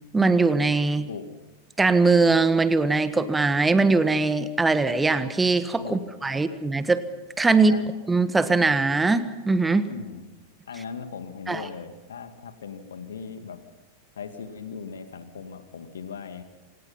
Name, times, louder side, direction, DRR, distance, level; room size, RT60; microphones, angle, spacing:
voice 1, 0.1-1.1 1.8-7.0 7.4-7.7 8.1-9.9 11.5-11.7, right 3 dB, 10° right, 12 dB, 1.5 m, -21 dB
voice 2, 7.5-7.9 9.9-10.2 10.7-13.6 14.2-16.4, left 6 dB, 65° left, 8 dB, 2.3 m, -38 dB
26.5 x 19.0 x 5.7 m, 1.1 s
figure-of-eight pair, 90°, 0 cm